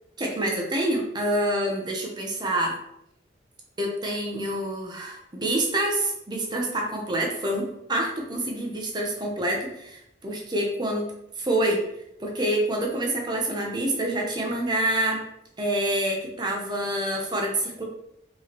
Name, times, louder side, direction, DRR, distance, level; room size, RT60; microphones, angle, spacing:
voice 1, 0.2-2.8 3.8-11.1 11.4-11.8 12.2-15.3 15.6-17.8, right 1 dB, 25° right, 0 dB, 0.7 m, -27 dB
4.5 x 3.0 x 2.9 m, 0.79 s
head